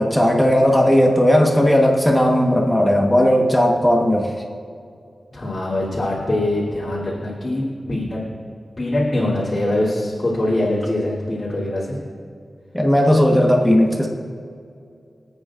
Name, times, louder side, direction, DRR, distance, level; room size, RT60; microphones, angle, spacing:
voice 1, 0.0-4.3 12.7-14.1, equal, 5° left, 0 dB, 1.3 m, -16 dB
voice 2, 5.3-7.6 7.9-8.2 8.8-12.0, left 1 dB, 45° left, -9 dB, 3.2 m, -23 dB
25.5 x 8.9 x 2.6 m, 2.3 s
wide cardioid pair, 85°, 0 cm